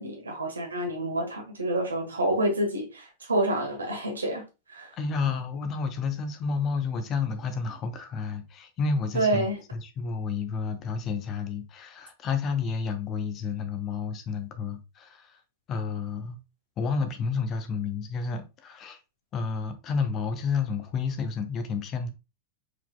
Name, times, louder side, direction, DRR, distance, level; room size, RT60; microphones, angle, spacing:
voice 1, 0.0-4.4 4.7-4.9 9.1-9.6, right 1 dB, 75° right, 1.3 m, -28 dB
voice 2, 4.9-9.5 9.7-15.4 15.7-16.4 16.8-19.0 19.3-22.1, left 5 dB, 30° left, 0.7 m, -30 dB
4.6 x 4.2 x 2.3 m
figure-of-eight pair, 90°, 0 cm